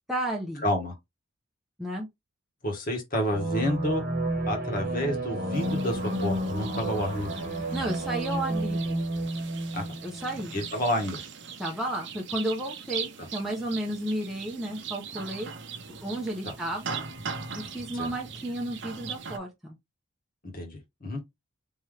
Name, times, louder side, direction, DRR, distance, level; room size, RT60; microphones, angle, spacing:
voice 1, 0.1-0.7 1.8-2.1 7.7-9.0 10.0-10.5 11.6-15.5 16.0-17.0 17.6-19.8, right 1 dB, ahead, 0.8 m, -32 dB
voice 2, 0.6-0.9 2.6-4.0 4.5-7.3 9.7-9.8 10.5-11.2 16.4-16.5 18.0-18.1 20.4-21.2, left 1 dB, 40° left, 1.4 m, -29 dB
sound 1, 3.2-10.6, right 1 dB, 40° right, 1.1 m, -31 dB
sound 2, 5.5-19.4, right 6 dB, 60° right, 0.7 m, -40 dB
3.6 x 3.0 x 3.2 m
head